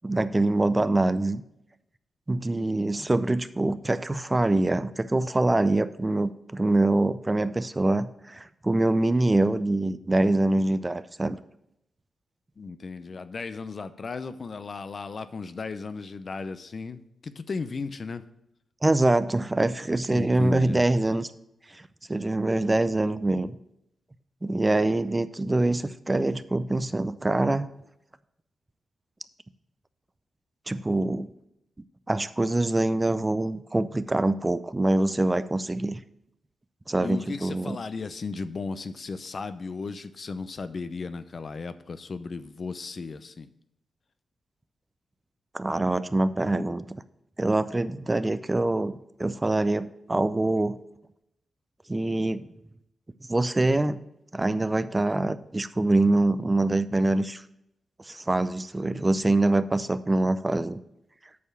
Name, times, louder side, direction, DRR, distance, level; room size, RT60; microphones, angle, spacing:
voice 1, 0.0-1.4 2.3-11.4 18.8-21.3 21.7-21.8 22.1-23.5 24.4-27.7 30.7-31.3 32.1-36.0 36.9-37.8 45.5-47.0 47.4-48.9 49.2-50.8 51.9-52.5 53.3-54.0 54.3-57.4 58.0-60.8, right 2 dB, 25° right, 13 dB, 0.5 m, -24 dB
voice 2, 12.6-18.2 20.1-20.8 37.0-43.5, left 4 dB, 55° left, 12 dB, 0.6 m, -35 dB
8.4 x 4.6 x 7.3 m, 0.81 s
supercardioid pair, 45°, 0 cm